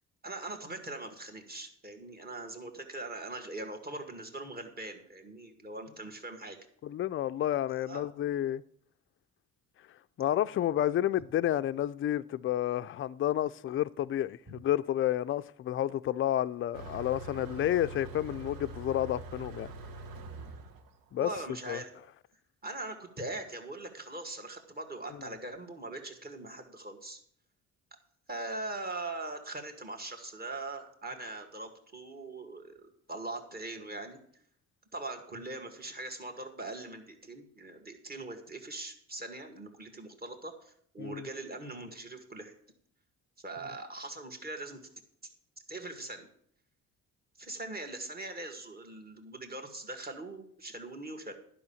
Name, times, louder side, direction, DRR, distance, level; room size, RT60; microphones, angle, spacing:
voice 1, 0.2-6.6 7.9-8.1 14.5-14.6 21.2-21.9 22.6-27.2 28.3-34.2 34.9-42.5 43.4-44.8 45.7-46.3 47.4-51.3, right 2 dB, 30° right, 2.0 m, -41 dB
voice 2, 6.8-8.6 10.2-19.7 21.1-21.3 21.7-21.8 41.0-41.3, left 12 dB, 40° left, 0.4 m, -30 dB
Motor vehicle (road), 16.7-21.9, right 2 dB, 85° right, 1.2 m, -44 dB
11.0 x 5.7 x 7.1 m
cardioid pair, 95°, 33 cm